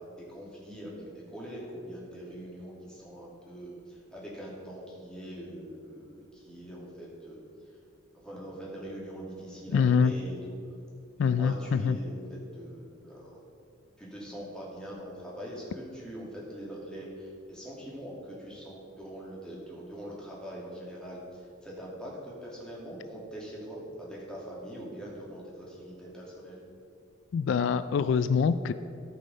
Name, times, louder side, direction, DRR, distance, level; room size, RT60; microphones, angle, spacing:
voice 1, 0.0-7.7 8.1-10.6 11.2-13.4 14.0-26.6, equal, 5° left, -5 dB, 2.5 m, -43 dB
voice 2, 9.7-10.1 11.2-12.0 27.3-28.7, left 6 dB, 70° left, 13 dB, 0.3 m, -25 dB
14.5 x 5.4 x 5.4 m, 2.5 s
head